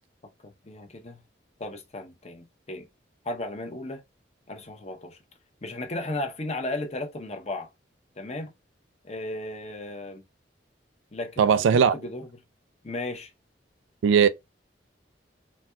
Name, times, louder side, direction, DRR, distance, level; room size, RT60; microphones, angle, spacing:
voice 1, 0.4-1.2 1.6-2.9 3.2-4.0 4.5-5.2 5.6-7.7 8.2-8.5 9.0-10.2 11.1-12.3 12.8-13.3, left 2 dB, 35° left, 0.7 m, -35 dB
voice 2, 11.4-11.9 14.0-14.3, right 7 dB, 90° right, 0.3 m, -18 dB
4.1 x 2.2 x 2.2 m
head